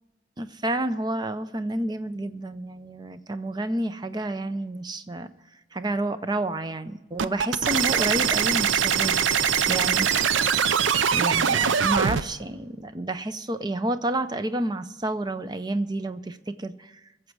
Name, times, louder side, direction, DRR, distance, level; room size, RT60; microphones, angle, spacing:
voice 1, 0.4-5.3 5.7-10.1 11.1-16.9, right 1 dB, 20° right, 11 dB, 0.5 m, -30 dB
sound 1, 7.2-12.2, right 7 dB, 75° right, 0.5 m, -22 dB
22.0 x 7.4 x 4.7 m, 1.1 s
head